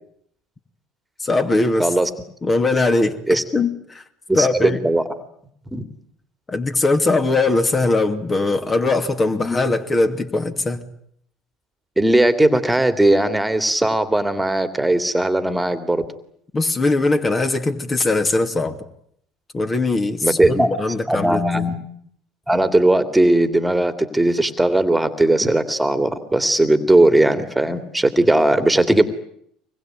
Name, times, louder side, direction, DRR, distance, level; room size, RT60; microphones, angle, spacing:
voice 1, 1.2-1.9 2.4-4.0 4.3-4.8 6.5-10.8 16.5-18.7 19.5-21.7, left 2 dB, 30° left, 6 dB, 2.8 m, -20 dB
voice 2, 4.3-5.0 5.7-5.8 9.4-9.6 12.0-16.0 20.2-20.7 21.1-21.8 22.5-29.0, right 1 dB, 5° right, 10 dB, 2.6 m, -18 dB
25.0 x 21.0 x 9.2 m, 0.70 s
hypercardioid pair, 75°, 0 cm